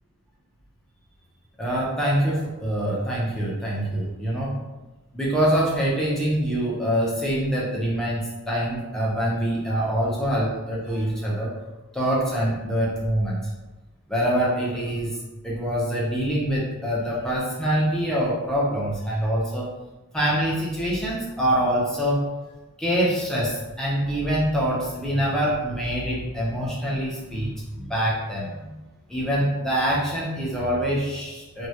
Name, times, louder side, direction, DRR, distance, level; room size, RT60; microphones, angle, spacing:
voice 1, 1.6-4.6 5.1-11.5 11.9-13.4 14.1-15.2 15.4-19.7 20.1-22.2 22.8-28.8 29.1-31.7, equal, 5° left, -6 dB, 0.5 m, -25 dB
2.2 x 2.0 x 2.7 m, 1.1 s
head